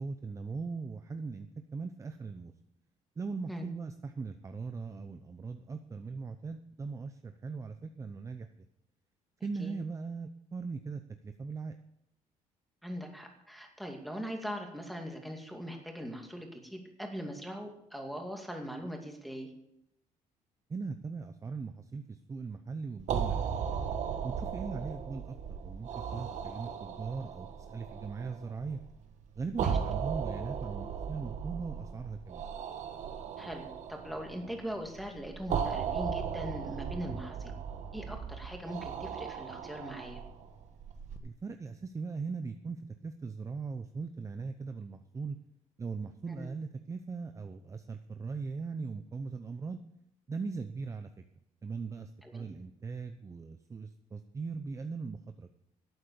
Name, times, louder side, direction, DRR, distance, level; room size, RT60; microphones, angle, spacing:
voice 1, 0.0-1.5 1.7-2.5 3.2-8.7 9.4-11.8 20.7-23.7 24.2-28.8 29.4-32.4 37.1-37.2 41.2-45.4 45.8-49.8 50.3-51.1 51.6-55.5, right 4 dB, 25° right, 8 dB, 0.7 m, -39 dB
voice 2, 12.8-19.5 29.6-29.8 33.4-37.5 37.9-40.2 46.3-46.5 52.2-52.5, equal, ahead, 3 dB, 2.4 m, -41 dB
sound 1, 23.0-41.2, right 7 dB, 60° right, 1.5 m, -37 dB
12.5 x 8.5 x 6.9 m, 0.80 s
cardioid pair, 120°, 13 cm